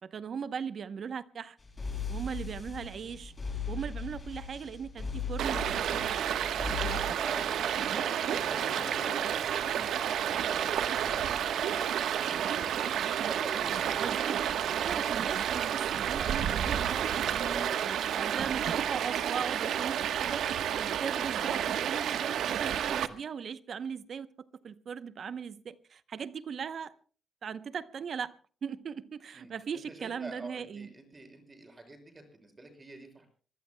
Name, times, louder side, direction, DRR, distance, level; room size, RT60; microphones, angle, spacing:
voice 1, 0.0-1.6 2.1-3.3 3.7-6.4 14.0-14.4 14.7-24.3 24.6-26.9 27.4-30.9, right 6 dB, 50° right, 0.8 m, -39 dB
sound 1, 1.6-7.0, left 4 dB, 20° left, 6.6 m, -38 dB
Stream, 5.4-23.1, right 9 dB, 85° right, 1.1 m, -30 dB
voice 2, 6.8-14.4 17.5-18.2 29.3-33.3, right 2 dB, 20° right, 6.0 m, -46 dB
sound 2, 6.9-7.3 7.8-10.5 11.4-12.2, left 5 dB, 75° left, 7.0 m, -50 dB
25.5 x 21.0 x 2.2 m
cardioid pair, 145°, 0 cm